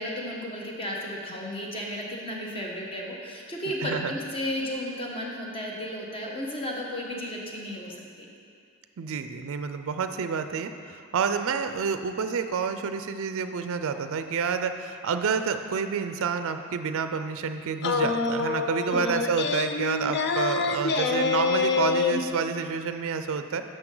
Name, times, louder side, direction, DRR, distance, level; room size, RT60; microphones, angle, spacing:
voice 1, 0.0-8.3 18.9-19.0, equal, 25° left, -2 dB, 1.2 m, -34 dB
voice 2, 3.8-4.1 9.0-23.6, right 6 dB, 65° right, 8 dB, 0.4 m, -29 dB
sound 1, 17.8-22.3, left 4 dB, 50° left, 0.5 m, -26 dB
10.5 x 6.5 x 3.8 m, 2.3 s
head